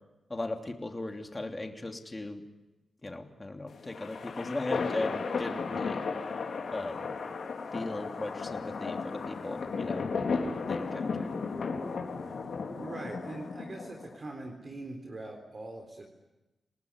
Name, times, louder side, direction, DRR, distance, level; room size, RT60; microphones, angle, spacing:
voice 1, 0.3-2.4 3.0-6.0 6.7-7.1 7.7-10.0 10.7-11.3, left 2 dB, 25° left, 4 dB, 3.0 m, -37 dB
sound 1, 3.7-14.1, left 4 dB, 75° left, 4.3 m, -35 dB
voice 2, 12.7-16.1, right 2 dB, 45° right, 2 dB, 3.8 m, -42 dB
28.0 x 19.0 x 9.8 m, 1.0 s
wide cardioid pair, 95°, 0 cm